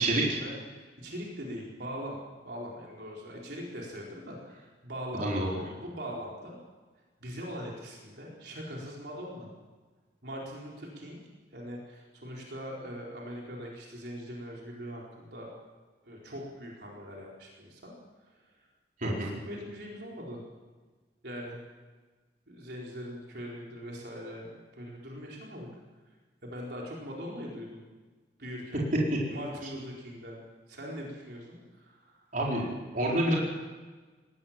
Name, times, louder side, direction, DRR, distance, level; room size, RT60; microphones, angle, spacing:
voice 1, 0.0-2.2 2.4-6.6 7.2-9.5 10.2-11.2 11.5-15.5 16.0-17.9 18.3-18.4 19.0-20.4 21.2-21.6 22.5-25.7 26.4-27.9 28.4-28.8 29.3-30.4 30.7-32.3, equal, 65° right, -2 dB, 4.4 m, -41 dB
voice 2, 5.1-5.5 19.0-19.3 32.3-32.7 32.9-33.4, right 1 dB, 50° right, -3 dB, 4.6 m, -27 dB
20.0 x 18.0 x 7.5 m, 1.3 s
head